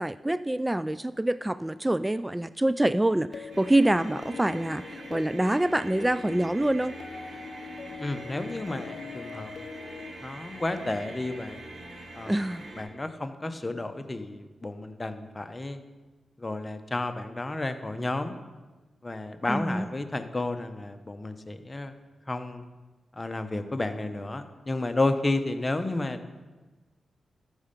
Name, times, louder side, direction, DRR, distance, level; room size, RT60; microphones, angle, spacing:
voice 1, 0.0-7.0 12.3-12.6 19.5-19.9, right 1 dB, 15° right, 15 dB, 0.3 m, -26 dB
Citron-Short, 3.3-10.1, left 5 dB, 60° left, 0.6 m, -42 dB
sound 1, 3.5-12.8, right 2 dB, 75° right, 3.5 m, -44 dB
voice 2, 8.0-9.5 10.2-11.6 12.1-12.4 12.8-15.8 16.4-18.3 19.0-21.9 22.3-22.6 23.2-26.2, left 2 dB, 30° left, 8 dB, 0.9 m, -31 dB
13.5 x 5.5 x 5.2 m, 1.3 s
supercardioid pair, 45°, 0 cm